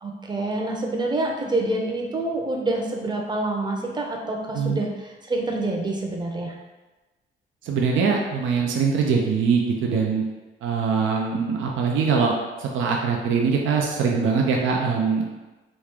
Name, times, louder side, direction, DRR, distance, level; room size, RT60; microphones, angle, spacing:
voice 1, 0.0-6.5, right 2 dB, 20° right, 0 dB, 0.7 m, -27 dB
voice 2, 7.6-10.2 10.6-12.3 12.6-15.2, right 5 dB, 75° right, 0 dB, 0.5 m, -22 dB
3.1 x 2.4 x 3.5 m, 1.2 s
cardioid pair, 90°, 20 cm